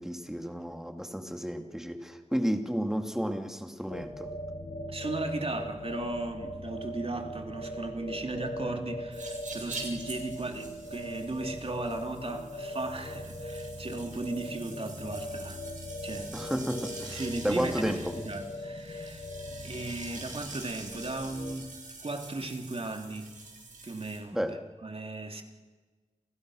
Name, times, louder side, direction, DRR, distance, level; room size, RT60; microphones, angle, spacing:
voice 1, 0.0-4.3 16.3-18.1 24.3-24.6, equal, 5° right, 5 dB, 2.7 m, -32 dB
sound 1, 3.9-21.5, left 1 dB, 40° left, 3.1 m, -40 dB
voice 2, 4.9-15.6 16.0-16.3 17.0-19.3 19.6-21.8 22.0-23.3 23.8-25.4, right 2 dB, 50° right, 4 dB, 3.1 m, -36 dB
sound 2, 9.1-24.2, right 3 dB, 85° right, 6.8 m, -46 dB
29.5 x 29.0 x 6.5 m, 1.4 s
wide cardioid pair, 70°, 13 cm